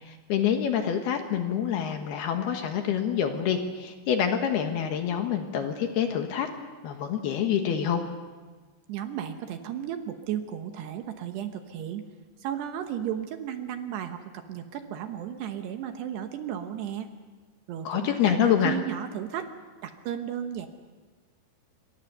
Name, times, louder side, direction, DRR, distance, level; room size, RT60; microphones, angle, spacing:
voice 1, 0.1-6.5 6.8-8.0 17.8-18.7, left 8 dB, 65° left, 5 dB, 3.0 m, -26 dB
voice 2, 8.9-12.1 12.4-17.1 17.7-19.5 19.8-20.7, right 10 dB, 70° right, 7 dB, 2.9 m, -34 dB
27.5 x 23.5 x 6.8 m, 1.4 s
omnidirectional pair, 5.6 m